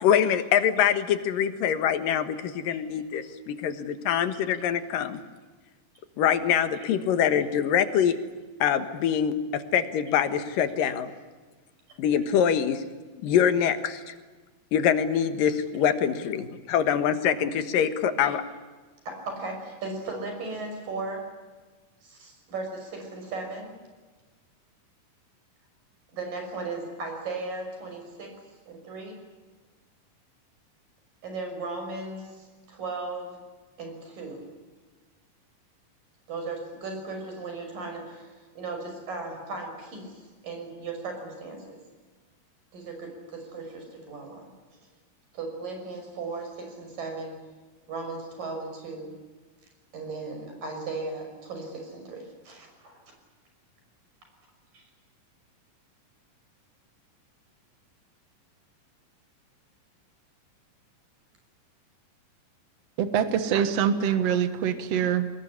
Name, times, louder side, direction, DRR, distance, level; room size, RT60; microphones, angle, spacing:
voice 1, 0.0-5.2 6.2-8.2 8.6-11.1 12.0-12.8 13.2-14.1 14.7-18.4, left 8 dB, 85° left, 10 dB, 3.1 m, -24 dB
voice 2, 19.1-21.3 22.0-23.7 26.1-28.3 28.7-29.2 31.2-33.4 33.8-34.5 36.3-41.8 42.7-44.5 45.3-47.4 47.9-49.1 49.9-53.0 54.7-54.8, right 3 dB, 80° right, 4 dB, 7.6 m, -36 dB
voice 3, 63.0-65.3, right 8 dB, 55° right, 10 dB, 2.4 m, -24 dB
24.5 x 20.0 x 10.0 m, 1.3 s
omnidirectional pair, 3.9 m